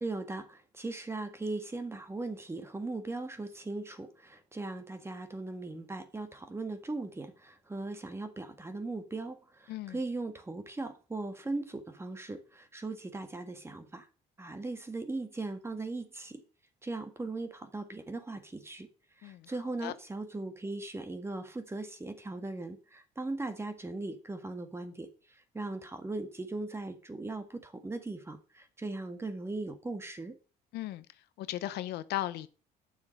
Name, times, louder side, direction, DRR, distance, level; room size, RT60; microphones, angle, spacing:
voice 1, 0.0-14.1 14.4-16.4 16.8-18.9 19.2-30.4, right 2 dB, 15° right, 1.6 m, -39 dB
voice 2, 19.2-19.5 19.8-19.9 30.7-31.1 31.4-32.5, left 14 dB, 75° left, 0.7 m, -36 dB
9.6 x 6.9 x 5.3 m
cardioid pair, 110°, 17 cm